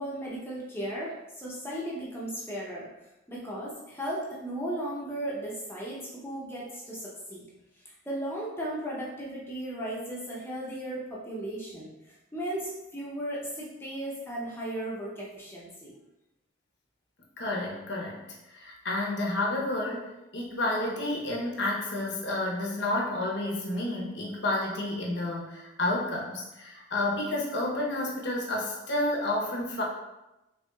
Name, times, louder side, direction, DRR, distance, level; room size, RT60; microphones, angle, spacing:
voice 1, 0.0-2.9 3.3-7.4 7.8-11.9 12.3-15.9, right 1 dB, 10° left, -6 dB, 0.6 m, -36 dB
voice 2, 17.4-18.2 18.5-29.8, left 1 dB, 60° left, -2 dB, 0.8 m, -30 dB
4.5 x 3.4 x 2.3 m, 0.97 s
head